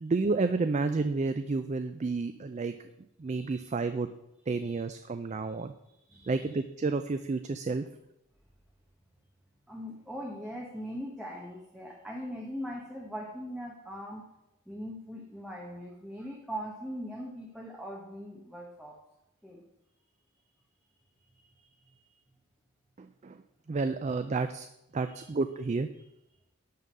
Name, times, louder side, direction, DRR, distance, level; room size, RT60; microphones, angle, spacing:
voice 1, 0.0-2.7 3.2-4.1 4.5-5.7 6.3-7.8 23.0-23.4 23.7-24.7 24.9-25.9, right 3 dB, 35° right, 9 dB, 0.4 m, -30 dB
voice 2, 3.3-3.6 4.5-4.8 5.4-5.5 6.1-6.6 9.7-14.2 14.7-19.0 19.4-19.6 21.4-21.6 25.0-25.2, equal, ahead, -3 dB, 1.2 m, -41 dB
11.0 x 3.8 x 7.6 m, 0.86 s
head